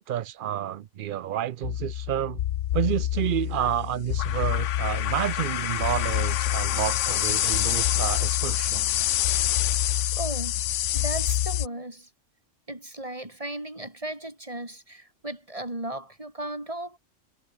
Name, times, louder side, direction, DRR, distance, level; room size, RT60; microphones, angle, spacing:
voice 1, 0.0-2.4 2.7-8.9, right 11 dB, 60° right, 0.5 m, -29 dB
sound 1, 1.6-11.7, left 13 dB, 75° left, 0.9 m, -26 dB
voice 2, 10.1-10.6 10.9-12.1 12.7-17.0, right 1 dB, 25° right, 4.3 m, -36 dB
omnidirectional pair, 1.3 m